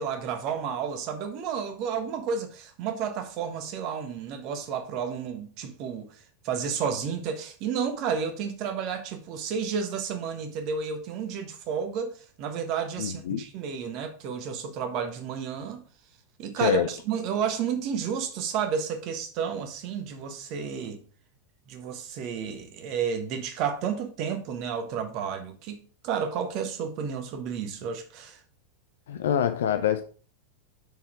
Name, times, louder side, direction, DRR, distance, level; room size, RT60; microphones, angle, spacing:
voice 1, 0.0-6.2 6.4-15.8 16.4-21.0 21.7-28.4, right 7 dB, 40° right, 1.2 m, -31 dB
voice 2, 13.0-13.4 16.6-16.9 29.1-30.0, left 9 dB, 60° left, 0.5 m, -25 dB
7.0 x 4.3 x 4.9 m
figure-of-eight pair, 90°, 0 cm